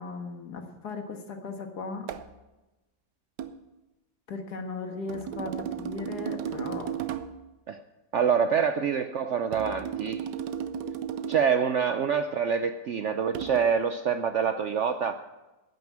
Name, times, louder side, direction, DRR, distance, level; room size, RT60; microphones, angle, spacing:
voice 1, 0.0-2.1 4.3-6.9, left 3 dB, 70° left, 5 dB, 2.0 m, -37 dB
sound 1, 2.1-2.3 3.4-3.6 5.1-7.4 9.5-11.6 13.3-13.6, right 8 dB, 85° right, 1.3 m, -34 dB
voice 2, 8.1-10.3 11.3-15.2, right 7 dB, 70° right, 9 dB, 0.7 m, -26 dB
11.0 x 9.5 x 8.6 m, 1.1 s
omnidirectional pair, 1.8 m